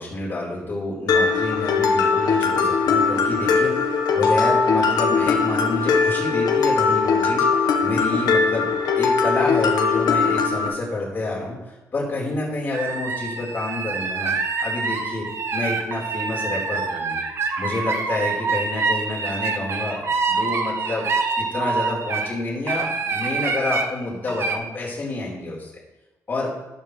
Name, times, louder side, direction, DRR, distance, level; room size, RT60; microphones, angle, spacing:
voice 1, 0.0-8.7 9.0-17.2 17.6-21.1 21.4-25.7 26.3-26.5, left 2 dB, 30° left, -5 dB, 4.4 m, -28 dB
Mallet percussion, 1.1-10.7, left 5 dB, 85° left, 1.3 m, -20 dB
sound 1, 12.7-22.3 22.7-23.9 24.3-24.6, right 4 dB, 45° right, 1.2 m, -26 dB
12.5 x 9.7 x 3.3 m, 1.1 s
cardioid pair, 145°, 6 cm